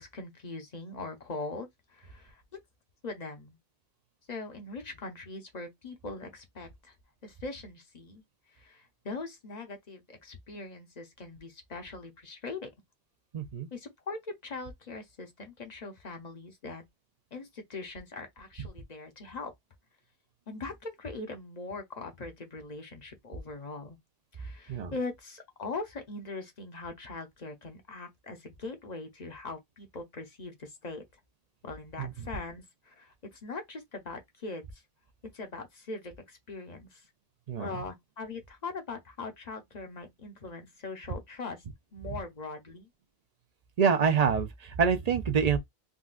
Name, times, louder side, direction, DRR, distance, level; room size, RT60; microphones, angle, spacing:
voice 1, 0.0-2.4 3.0-3.6 4.3-7.0 7.2-8.2 8.5-12.7 13.7-16.8 17.3-19.5 20.5-24.0 24.3-31.0 31.6-34.8 35.3-37.1 37.6-41.6 41.9-42.9, left 3 dB, 45° left, 0.8 m, -41 dB
voice 2, 13.3-13.7 24.7-24.9 32.0-32.1 37.5-37.7 43.8-45.6, right 6 dB, 50° right, 0.5 m, -26 dB
3.7 x 2.2 x 2.4 m
omnidirectional pair, 1.1 m